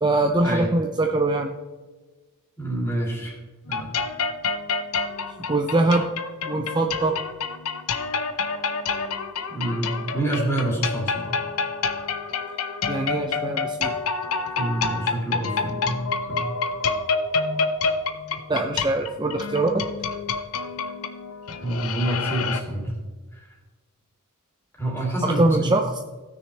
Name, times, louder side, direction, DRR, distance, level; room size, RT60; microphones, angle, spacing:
voice 1, 0.0-1.5 5.5-6.1 6.5-7.2 12.9-13.9 18.5-19.9 25.2-26.0, right 2 dB, 20° right, 3 dB, 0.5 m, -22 dB
voice 2, 2.6-3.4 3.7-3.9 9.5-11.3 14.6-16.5 21.6-22.9 23.3-23.4 24.8-25.7, right 1 dB, 10° left, -3 dB, 2.7 m, -27 dB
sound 1, 3.7-22.6, left 4 dB, 70° left, 0.7 m, -28 dB
16.5 x 6.4 x 3.3 m, 1.3 s
head